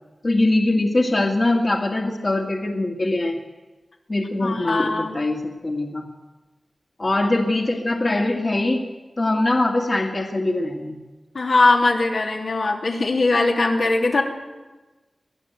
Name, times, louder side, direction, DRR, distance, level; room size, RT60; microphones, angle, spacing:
voice 1, 0.2-3.4 4.1-6.0 7.0-8.8 9.2-11.0, left 2 dB, 40° left, 2 dB, 2.2 m, -22 dB
voice 2, 4.4-5.3 11.3-14.2, left 3 dB, 75° left, 0 dB, 3.1 m, -20 dB
22.5 x 14.0 x 8.2 m, 1.2 s
cardioid pair, 55°, 0 cm